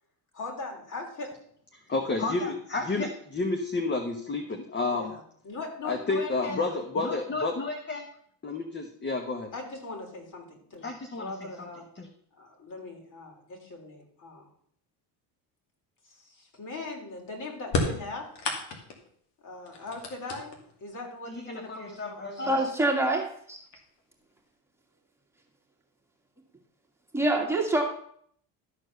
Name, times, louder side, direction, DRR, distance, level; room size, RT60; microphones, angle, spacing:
voice 1, 0.3-1.3 4.9-6.6 9.5-10.9 11.2-11.9 12.3-14.5 16.0-18.3 19.4-22.7, left 3 dB, 45° left, 1 dB, 3.6 m, -40 dB
voice 2, 1.9-5.1 5.8-8.0 8.4-9.5 10.8-11.3 12.0-12.1 21.3-22.6, left 3 dB, 25° left, 4 dB, 1.3 m, -30 dB
sound 1, 17.6-19.1 19.7-20.8 21.9-22.0 22.9-23.0 23.5-24.0, left 3 dB, 75° left, 2.5 m, -32 dB
voice 3, 22.5-23.6 27.1-27.8, right 2 dB, 5° right, -2 dB, 2.2 m, -25 dB
13.0 x 4.5 x 6.7 m, 0.64 s
supercardioid pair, 100°, 42 cm